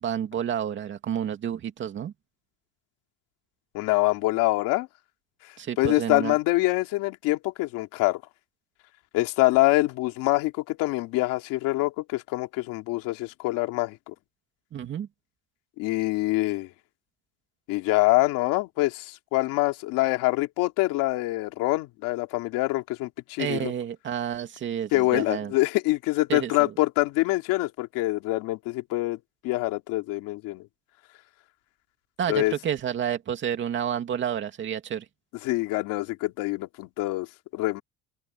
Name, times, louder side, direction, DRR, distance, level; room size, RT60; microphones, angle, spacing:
voice 1, 0.0-2.1 5.6-6.3 14.7-15.1 23.4-25.5 26.3-26.7 32.2-35.0, right 9 dB, 35° right, 2.5 m, -30 dB
voice 2, 3.7-4.9 5.8-8.2 9.1-14.1 15.8-16.7 17.7-23.7 24.9-29.2 29.4-30.6 32.3-32.5 35.4-37.3 37.5-37.8, left 20 dB, 90° left, 2.7 m, -25 dB
open air
cardioid pair, 165°, 32 cm